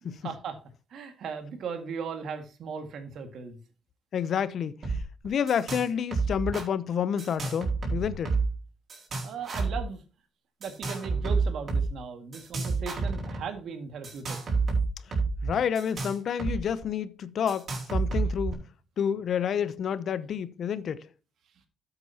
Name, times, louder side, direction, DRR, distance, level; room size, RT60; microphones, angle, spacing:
voice 1, 0.0-0.6 0.9-3.6 9.2-10.0 10.6-14.4, right 6 dB, 70° right, 1.9 m, -37 dB
voice 2, 4.1-8.4 15.4-18.6 19.0-21.1, left 8 dB, 60° left, 0.7 m, -29 dB
sound 1, 4.8-5.0 5.2-5.9 6.1-6.6 7.2-8.6 8.9-9.8 10.6-11.9 12.3-13.4 14.0-16.6 16.8-16.9 17.5-18.5, right 4 dB, 50° right, 4.5 m, -29 dB
13.0 x 7.9 x 2.9 m
cardioid pair, 90°, 0 cm